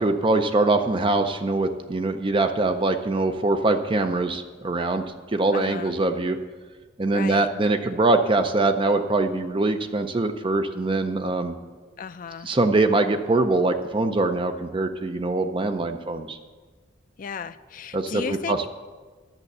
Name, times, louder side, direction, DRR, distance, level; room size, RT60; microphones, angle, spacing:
voice 1, 0.0-5.0 5.3-6.4 7.0-11.6 12.4-16.4 17.9-18.7, right 2 dB, 25° right, 8 dB, 0.5 m, -23 dB
voice 2, 5.5-5.9 7.1-7.5 12.0-12.5 17.2-18.7, left 6 dB, 45° left, 11 dB, 0.4 m, -34 dB
11.0 x 6.9 x 6.7 m, 1.4 s
head